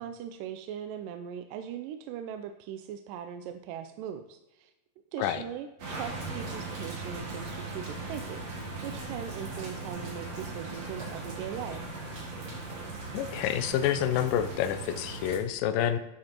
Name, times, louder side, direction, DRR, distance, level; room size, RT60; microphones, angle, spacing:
voice 1, 0.0-4.7 5.1-8.5 8.8-11.9, right 9 dB, 85° right, 8 dB, 2.1 m, -40 dB
sound 1, 5.8-15.4, right 3 dB, 55° right, 2.9 m, -38 dB
voice 2, 13.1-16.0, left 10 dB, 85° left, 10 dB, 2.3 m, -28 dB
11.5 x 7.5 x 3.0 m, 0.99 s
omnidirectional pair, 3.9 m